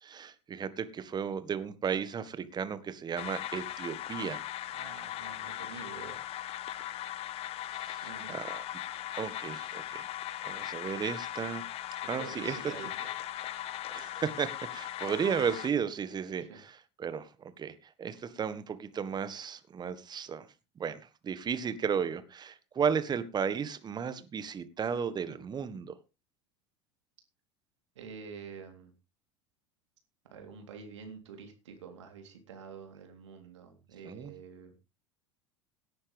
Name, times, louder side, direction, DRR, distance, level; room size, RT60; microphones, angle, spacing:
voice 1, 0.0-4.4 7.8-8.6 9.1-10.1 10.4-11.6 12.1-12.6 13.9-20.5 20.8-25.9 34.0-34.3, right 7 dB, 25° right, 1.6 m, -34 dB
sound 1, 3.2-15.7, left 13 dB, 40° left, 0.9 m, -39 dB
voice 2, 4.7-6.2 8.0-8.3 12.0-13.3 16.4-16.6 28.0-28.9 30.3-34.7, right 6 dB, 70° right, 3.6 m, -47 dB
17.5 x 9.7 x 3.5 m
figure-of-eight pair, 75°, 16 cm